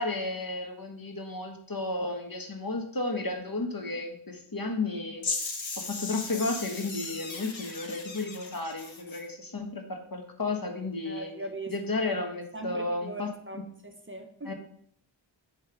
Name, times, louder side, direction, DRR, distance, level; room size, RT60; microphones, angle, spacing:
voice 1, 0.0-5.2 5.8-11.3 11.7-13.3 13.5-13.6 14.4-14.5, left 2 dB, 50° left, 4 dB, 1.2 m, -33 dB
sound 1, 5.2-9.2, left 3 dB, 80° left, 1.1 m, -37 dB
voice 2, 11.0-12.1 12.5-14.5, right 2 dB, 25° right, 5 dB, 0.8 m, -40 dB
7.3 x 3.3 x 5.8 m, 0.64 s
wide cardioid pair, 55°, 45 cm